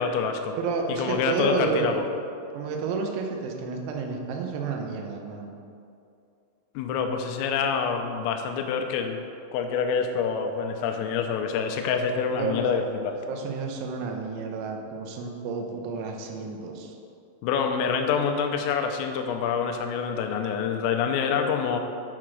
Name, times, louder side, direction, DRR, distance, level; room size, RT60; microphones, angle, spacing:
voice 1, 0.0-0.5 1.0-2.0 6.8-9.2 9.5-13.2 17.4-21.8, left 6 dB, 85° left, 5 dB, 3.3 m, -26 dB
voice 2, 0.6-2.0 2.5-5.5 12.3-12.7 13.3-16.9, right 4 dB, 90° right, 2 dB, 3.6 m, -31 dB
9.0 x 4.8 x 6.1 m, 2.6 s
omnidirectional pair, 5.9 m